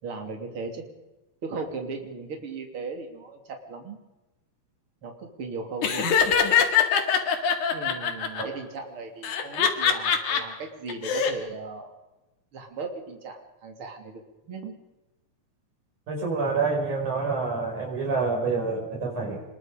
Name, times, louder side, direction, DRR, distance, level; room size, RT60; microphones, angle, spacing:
voice 1, 0.0-0.8 1.4-4.0 5.0-6.1 7.7-11.9 12.5-14.8, right 4 dB, 45° right, 3 dB, 3.6 m, -37 dB
Laughter, 5.8-8.4 9.2-10.4 10.9-11.3, left 7 dB, 85° left, 3.4 m, -23 dB
voice 2, 16.1-19.4, right 4 dB, 85° right, 0 dB, 6.7 m, -27 dB
26.0 x 21.0 x 5.2 m, 1.0 s
omnidirectional pair, 3.4 m